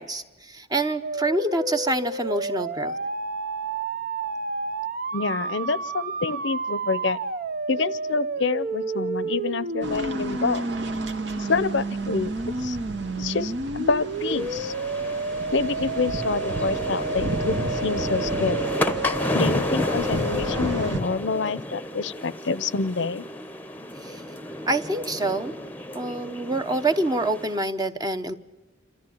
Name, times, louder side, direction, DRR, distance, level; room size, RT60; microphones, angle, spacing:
voice 1, 0.0-2.9 24.0-24.2 24.7-25.5 25.9-28.3, right 2 dB, 20° right, 9 dB, 0.9 m, -26 dB
sound 1, 1.0-20.9, right 3 dB, 50° right, 0.8 m, -30 dB
voice 2, 5.1-7.2 7.7-10.7 11.3-12.3 12.6-12.8 13.2-14.7 15.5-18.7 19.3-23.3, left 4 dB, 70° left, 17 dB, 0.7 m, -27 dB
sound 2, 9.8-21.0, right 2 dB, 70° right, 1.7 m, -35 dB
sound 3, 14.1-27.6, left 1 dB, 10° left, 0.9 m, -31 dB
27.5 x 14.0 x 9.9 m, 1.1 s
head